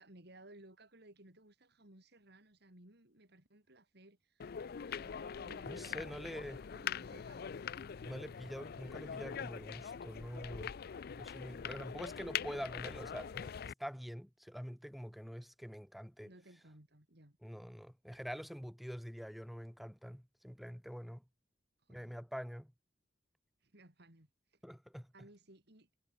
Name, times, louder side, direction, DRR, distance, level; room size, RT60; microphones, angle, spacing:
voice 1, 0.0-7.8 10.3-10.6 16.2-17.4 21.9-22.2 23.6-24.3 25.1-25.9, right 1 dB, 60° right, 5.0 m, -60 dB
sound 1, 4.4-13.7, left 7 dB, 55° left, 0.4 m, -43 dB
voice 2, 5.7-6.6 8.0-10.7 11.2-16.3 17.4-21.2 21.9-22.7 24.6-25.1, equal, ahead, 3.1 m, -46 dB
head